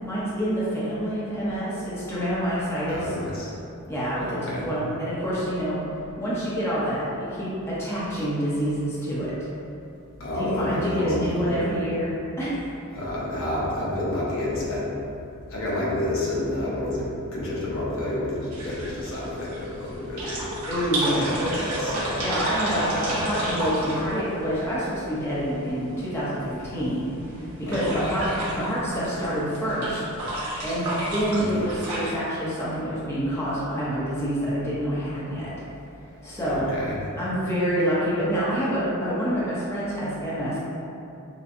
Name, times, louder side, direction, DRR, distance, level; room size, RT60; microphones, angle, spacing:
voice 1, 0.0-3.1 3.9-4.4 4.6-5.8 6.2-9.3 10.3-12.6 20.7-21.4 22.2-28.3 28.5-30.0 30.6-35.5 36.2-36.7 37.2-40.6, equal, 10° left, -10 dB, 0.9 m, -27 dB
voice 2, 2.9-3.5 4.2-4.7 10.2-11.7 12.9-14.9 15.5-20.5 21.5-22.2 27.7-28.1 31.3-31.5 36.4-37.0, left 1 dB, 65° left, -7 dB, 1.0 m, -29 dB
sound 1, 18.5-32.1, right 1 dB, 85° right, 1.2 m, -32 dB
6.8 x 2.3 x 2.7 m, 2.7 s
head